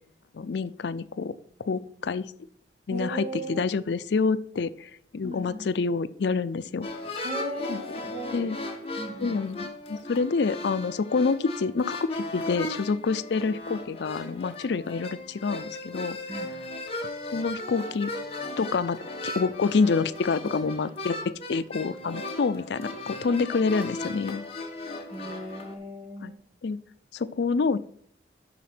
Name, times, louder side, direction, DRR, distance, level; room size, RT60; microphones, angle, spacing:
voice 1, 0.3-1.3 1.6-2.3 2.9-6.9 7.7-7.8 8.3-8.6 9.2-16.2 17.3-18.1 18.6-24.4 26.2-26.3 26.6-26.8 27.1-27.8, left 4 dB, 85° left, 15 dB, 0.5 m, -27 dB
voice 2, 2.9-3.7 5.2-5.7 7.2-8.5 9.0-9.4 16.3-16.6 25.1-26.3, right 1 dB, 40° right, 2 dB, 1.8 m, -37 dB
sound 1, 6.8-25.7, left 2 dB, 35° left, 1.4 m, -37 dB
12.0 x 4.2 x 5.9 m, 0.63 s
head